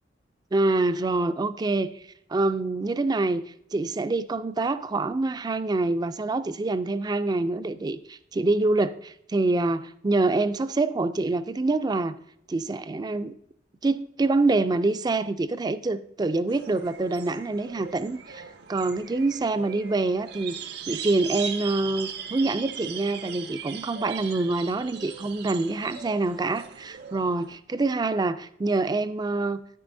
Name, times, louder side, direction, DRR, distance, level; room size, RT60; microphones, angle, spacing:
voice 1, 0.5-1.9 2.3-3.4 3.7-12.2 12.5-13.3 13.8-18.4 18.7-20.6 20.9-29.6, right 2 dB, 20° right, 12 dB, 0.3 m, -26 dB
sound 1, 16.5-27.6, right 7 dB, 60° right, 0.6 m, -39 dB
10.0 x 9.1 x 2.6 m, 0.74 s
head